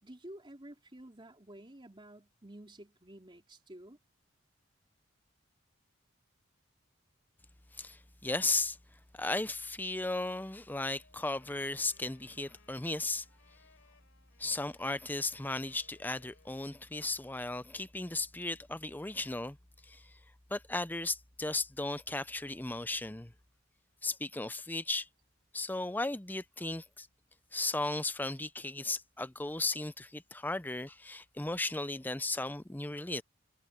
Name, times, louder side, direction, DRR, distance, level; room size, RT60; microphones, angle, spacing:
voice 1, 0.0-4.0, right 1 dB, 25° right, 3.6 m, -51 dB
voice 2, 7.7-8.8 9.1-13.3 14.4-19.6 19.8-20.1 20.5-23.3 24.0-25.1 25.5-27.1 27.5-33.2, left 2 dB, 10° left, 0.6 m, -35 dB
Wind instrument woodwind instrument, 11.0-16.9, left 4 dB, 70° left, 3.7 m, -66 dB
head